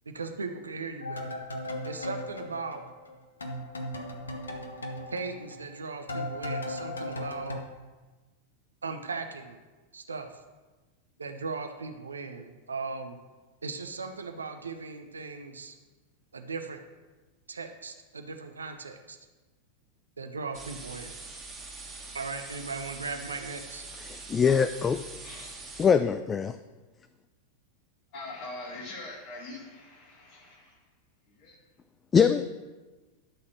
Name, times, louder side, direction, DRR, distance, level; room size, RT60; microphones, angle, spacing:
voice 1, 0.1-1.3 1.8-2.8 5.1-7.6 8.8-9.6 9.9-10.3 11.2-13.2 13.6-15.8 16.3-16.8 17.5-19.2 20.2-21.1 22.1-23.9, right 4 dB, 75° right, 6 dB, 0.8 m, -38 dB
sound 1, 1.0-3.1 3.4-7.6, left 1 dB, 75° left, 1.0 m, -37 dB
sound 2, 20.5-25.9, right 3 dB, 10° right, 1.8 m, -43 dB
voice 2, 24.0-25.0 25.8-26.6 32.1-32.4, left 6 dB, 20° left, 12 dB, 0.3 m, -23 dB
voice 3, 25.2-25.6 28.1-30.7 31.4-31.6, left 2 dB, 45° left, 0 dB, 2.3 m, -42 dB
11.5 x 4.1 x 6.4 m, 1.2 s
figure-of-eight pair, 90°, 0 cm